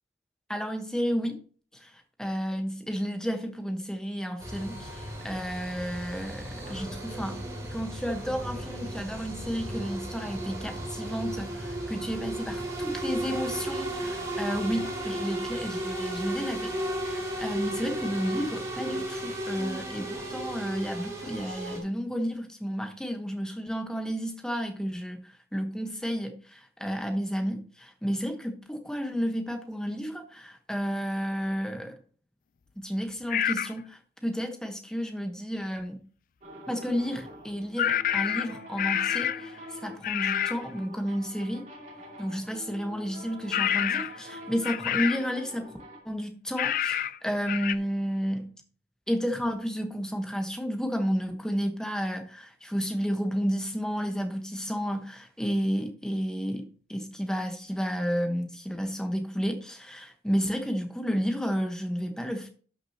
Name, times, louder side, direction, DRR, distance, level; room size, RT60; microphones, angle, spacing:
voice 1, 0.5-1.4 1.7-1.9 2.2-7.4 7.7-16.8 17.0-32.0 32.8-36.0 36.7-41.6 42.2-45.7 46.0-48.5 49.1-62.5, equal, 5° left, 1.1 m, -32 dB
sound 1, 4.4-21.8, right 1 dB, 20° right, 2.8 m, -34 dB
sound 2, 33.3-33.7 37.8-39.5 40.0-40.6 43.5-44.2 44.6-45.3 46.6-47.2 47.5-47.7, left 10 dB, 45° left, 0.3 m, -28 dB
sound 3, 36.4-46.0, equal, 40° right, 2.5 m, -46 dB
12.0 x 6.3 x 2.9 m
head